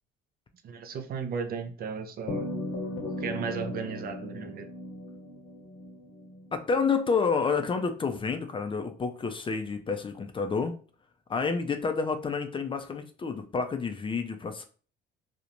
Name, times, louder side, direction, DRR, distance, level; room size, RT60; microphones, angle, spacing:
voice 1, 0.6-2.5 3.0-4.7, right 6 dB, 50° right, 8 dB, 0.4 m, -35 dB
sound 1, 2.3-6.9, left 2 dB, 65° left, 0.7 m, -37 dB
voice 2, 6.5-10.7 11.3-14.6, left 5 dB, 25° left, 7 dB, 0.4 m, -29 dB
2.4 x 2.1 x 2.9 m, 0.39 s
supercardioid pair, 75°, 20 cm